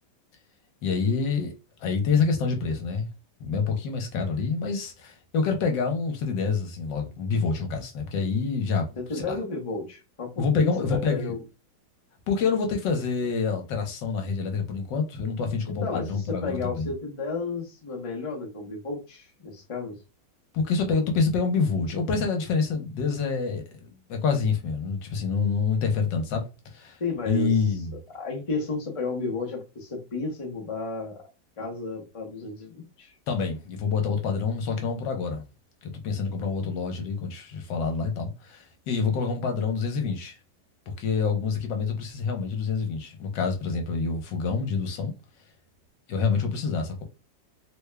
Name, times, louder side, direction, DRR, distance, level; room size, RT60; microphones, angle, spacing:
voice 1, 0.8-3.1 3.4-8.9 9.1-9.4 10.4-11.4 12.3-16.9 20.5-26.5 26.7-27.0 27.3-28.0 33.3-35.4 35.8-40.4 41.0-45.1 46.1-47.0, left 5 dB, 80° left, 1.5 m, -27 dB
voice 2, 9.0-11.4 15.7-20.0 27.0-27.5 28.1-31.3 31.6-33.1, left 3 dB, 30° left, 0.6 m, -33 dB
3.5 x 2.3 x 3.3 m
omnidirectional pair, 2.0 m